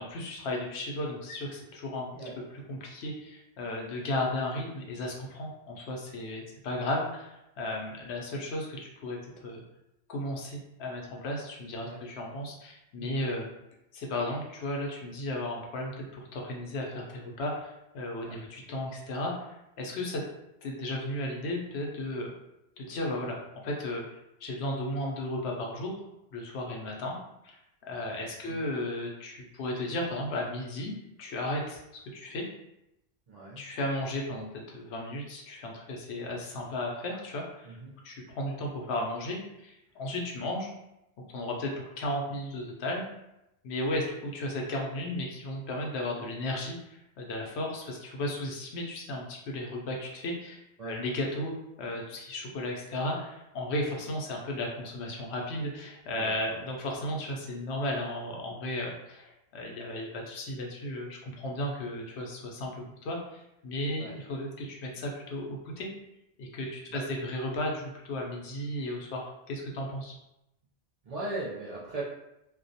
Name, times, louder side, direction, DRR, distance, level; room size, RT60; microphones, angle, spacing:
voice 1, 0.0-2.1 2.7-9.6 10.1-13.5 13.9-20.2 20.6-22.3 22.8-26.0 26.3-27.2 27.4-30.9 31.2-31.8 32.1-32.4 33.6-37.8 38.0-40.7 41.3-43.0 43.6-51.5 51.8-65.9 66.4-70.1, left 1 dB, 85° left, 0 dB, 0.9 m, -35 dB
voice 2, 33.3-33.6 37.6-38.0 50.8-51.0 56.1-56.6 64.0-64.2 66.9-67.0 71.0-72.0, right 2 dB, 55° right, -7 dB, 0.4 m, -39 dB
2.3 x 2.1 x 2.6 m, 0.87 s
omnidirectional pair, 1.1 m